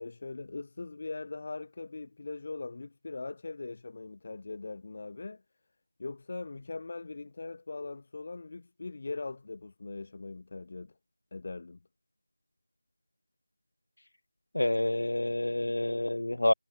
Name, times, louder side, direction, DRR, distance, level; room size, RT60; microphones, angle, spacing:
voice 1, 0.0-5.4 6.0-10.9 11.3-11.8, left 3 dB, 30° left, 4.6 m, -40 dB
voice 2, 14.5-16.5, left 1 dB, 75° left, 2.1 m, -28 dB
figure-of-eight pair, 175°, 0 cm